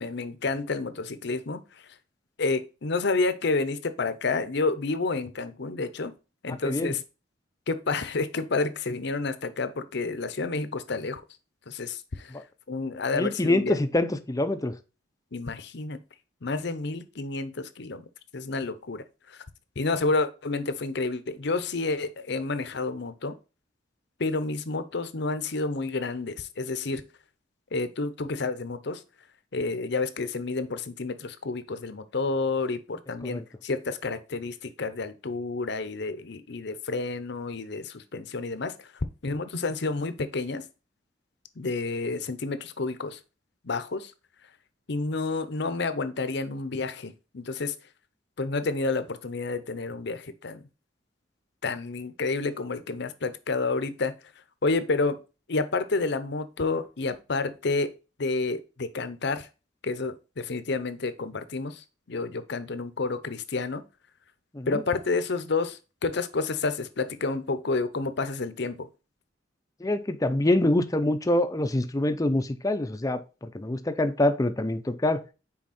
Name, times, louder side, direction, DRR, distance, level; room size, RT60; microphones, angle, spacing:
voice 1, 0.0-1.6 2.4-6.1 6.4-7.0 7.7-11.2 11.7-12.4 12.7-13.7 15.3-16.0 16.4-18.0 18.3-19.4 19.8-23.3 24.2-27.0 27.7-29.0 29.5-38.7 39.2-40.6 41.6-43.2 43.6-44.1 44.9-47.7 48.4-50.6 51.6-54.1 54.6-55.2 55.5-57.9 58.2-59.5 59.8-63.8 64.7-68.9, left 3 dB, 60° left, 0.7 m, -30 dB
voice 2, 6.5-6.9 12.3-12.4 13.1-14.8 33.2-33.4 64.5-64.8 69.8-75.2, left 1 dB, 20° left, 0.6 m, -25 dB
6.1 x 4.6 x 4.2 m
head